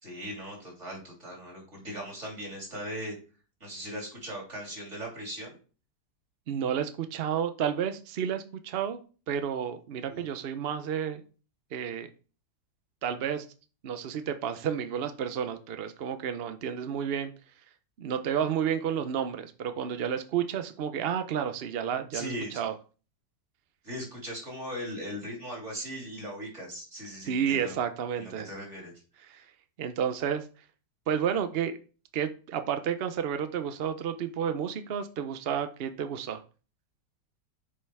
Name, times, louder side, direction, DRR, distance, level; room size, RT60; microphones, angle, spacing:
voice 1, 0.0-3.2 3.6-5.5 10.1-10.3 22.1-22.6 23.8-27.8 28.2-28.9, equal, 45° right, -1 dB, 3.5 m, -39 dB
voice 2, 6.5-9.0 9.3-11.2 11.7-12.1 13.0-13.5 13.8-17.3 18.0-22.7 27.2-28.5 29.3-29.4 29.8-30.5 31.1-31.8 32.1-36.4, right 8 dB, 65° right, 9 dB, 0.6 m, -31 dB
6.7 x 5.4 x 4.6 m, 0.37 s
omnidirectional pair, 1.8 m